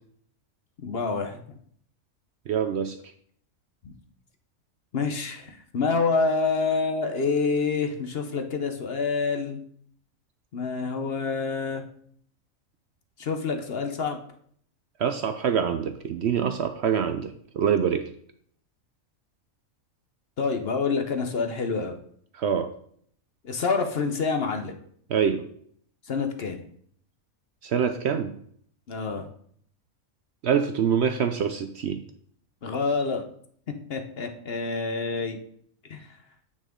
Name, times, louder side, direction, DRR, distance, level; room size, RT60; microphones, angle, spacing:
voice 1, 0.8-1.4 3.8-3.9 4.9-9.6 10.5-11.8 13.2-14.2 20.4-21.9 23.4-24.8 26.1-26.6 28.9-29.3 32.6-33.2 33.9-35.4 35.9-36.1, left 4 dB, 50° left, 5 dB, 1.0 m, -27 dB
voice 2, 2.5-3.0 15.0-18.1 22.3-22.7 25.1-25.4 27.6-28.4 30.4-32.0, right 7 dB, 60° right, 8 dB, 0.7 m, -25 dB
8.3 x 6.2 x 3.7 m, 0.62 s
omnidirectional pair, 1.5 m